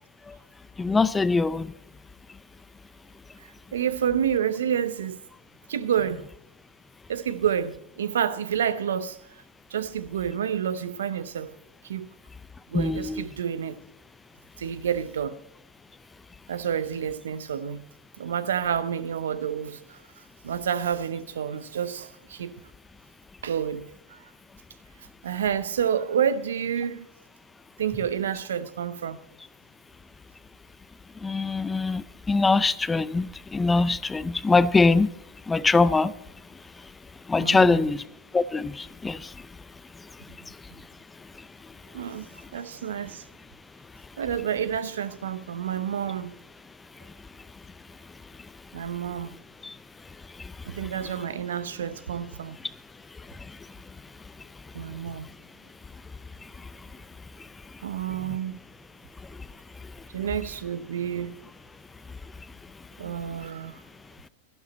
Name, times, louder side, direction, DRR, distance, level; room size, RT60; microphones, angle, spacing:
voice 1, 0.8-1.7 12.7-13.2 31.2-35.1 35.5-36.1 37.3-38.0 38.3-39.3 49.6-49.7, left 3 dB, 15° left, 0.4 m, -22 dB
voice 2, 3.7-5.2 5.7-6.3 7.1-9.2 9.7-11.5 11.8-12.1 12.7-13.8 14.6-15.4 16.5-17.8 18.2-20.0 20.4-22.6 23.4-24.3 25.2-27.1 27.8-29.2 37.4-37.9 40.3-40.4 40.7-40.8 41.9-43.2 44.2-46.4 48.7-49.4 50.6-52.6 54.7-55.3 57.8-58.6 60.1-61.4 63.0-63.8, right 8 dB, 75° right, 0.7 m, -29 dB
13.5 x 12.0 x 4.2 m
hypercardioid pair, 100°, 0 cm